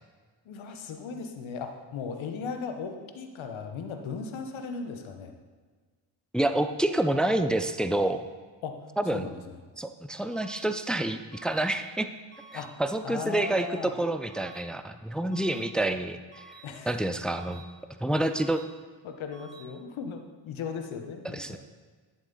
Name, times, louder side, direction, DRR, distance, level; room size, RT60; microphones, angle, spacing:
voice 1, 0.4-5.3 8.6-8.8 9.1-9.6 12.5-12.7 13.0-13.9 16.6-16.9 19.0-21.6, left 5 dB, 85° left, 5 dB, 1.1 m, -37 dB
voice 2, 6.3-8.3 9.0-9.3 9.8-12.1 12.5-16.5 16.9-17.6 18.0-18.6 21.2-21.6, right 1 dB, ahead, 9 dB, 0.5 m, -28 dB
sound 1, 10.3-10.6 11.3-11.6 12.3-12.6 13.3-13.6 14.3-14.6 15.3-15.6 16.3-16.6 17.3-17.6 18.3-18.6 19.3-19.6, right 4 dB, 25° right, 2.2 m, -50 dB
11.0 x 7.3 x 3.9 m, 1.5 s
cardioid pair, 70°, 46 cm